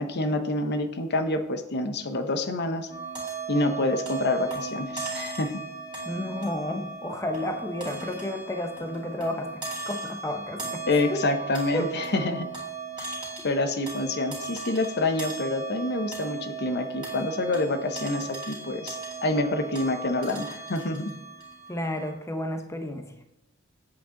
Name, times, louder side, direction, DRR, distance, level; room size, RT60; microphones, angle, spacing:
voice 1, 0.0-2.9 3.5-5.6 10.9-12.5 13.0-13.1 13.4-21.1, left 2 dB, 50° left, 8 dB, 0.8 m, -27 dB
sound 1, 2.9-22.1, right 5 dB, 20° right, 2.9 m, -37 dB
voice 2, 6.1-10.8 11.1-11.2 11.7-11.9 21.7-23.1, left 1 dB, 15° left, 5 dB, 0.7 m, -32 dB
8.4 x 8.3 x 3.8 m, 0.92 s
head